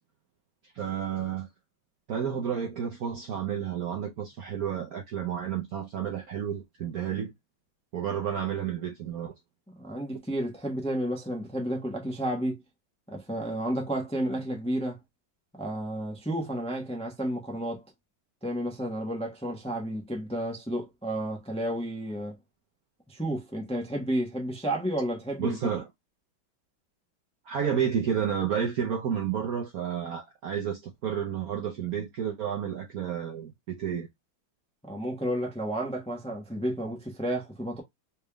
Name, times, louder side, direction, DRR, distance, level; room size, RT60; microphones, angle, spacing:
voice 1, 0.7-1.5 2.1-7.3 7.9-9.3 25.4-25.9 27.5-34.1, right 8 dB, 65° right, 1.0 m, -31 dB
voice 2, 9.7-12.6 13.1-15.0 15.6-17.8 18.4-22.4 23.1-25.7 34.8-37.8, right 1 dB, 5° left, 0.7 m, -31 dB
4.2 x 3.5 x 2.2 m
omnidirectional pair, 2.2 m